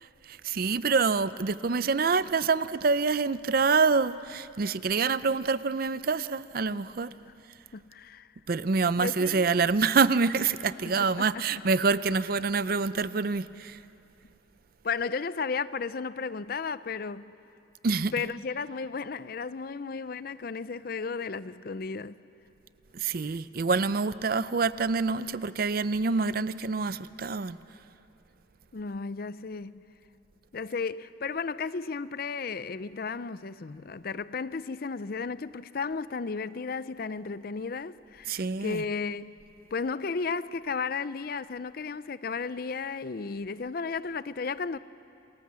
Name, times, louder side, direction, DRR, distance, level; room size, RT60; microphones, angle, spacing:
voice 1, 0.2-7.1 8.5-13.8 17.8-18.1 22.9-27.6 38.3-38.8, right 4 dB, 50° right, 0.5 m, -26 dB
voice 2, 7.7-8.3 9.0-9.4 11.0-11.4 14.8-17.3 18.1-22.2 28.7-29.8 30.5-39.3 39.7-44.8, left 5 dB, 50° left, 0.5 m, -34 dB
28.5 x 21.0 x 7.5 m
head